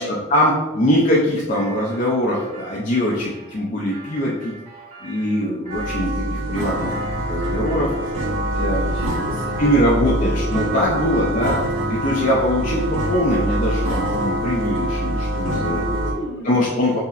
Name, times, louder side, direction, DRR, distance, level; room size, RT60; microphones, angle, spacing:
voice 1, 0.0-4.5 5.0-6.9 7.3-7.9 8.6-8.8 9.6-11.6 11.9-15.8 16.4-17.0, left 1 dB, 40° left, -4 dB, 0.4 m, -22 dB
Electronic Pulses, 1.5-6.0 6.5-8.6 8.9-9.9, right 4 dB, 40° right, 1.3 m, -42 dB
sound 1, 5.7-16.1, right 1 dB, 80° right, 0.6 m, -24 dB
voice 2, 8.6-9.8 10.2-10.4 11.0-11.4 15.8-16.7, left 1 dB, 70° left, -5 dB, 1.4 m, -34 dB
5.3 x 2.0 x 2.4 m, 1.1 s
head